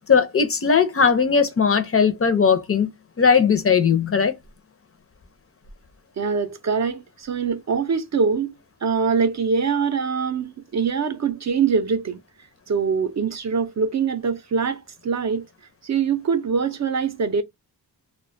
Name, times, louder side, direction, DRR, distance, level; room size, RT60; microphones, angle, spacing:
voice 1, 0.1-2.9 3.2-4.3, left 6 dB, 35° left, 0.5 m, -18 dB
voice 2, 6.2-8.5 8.8-12.2 12.7-15.5 15.8-17.4, right 5 dB, 45° right, 0.5 m, -23 dB
2.3 x 2.2 x 2.5 m
wide cardioid pair, 90°, 40 cm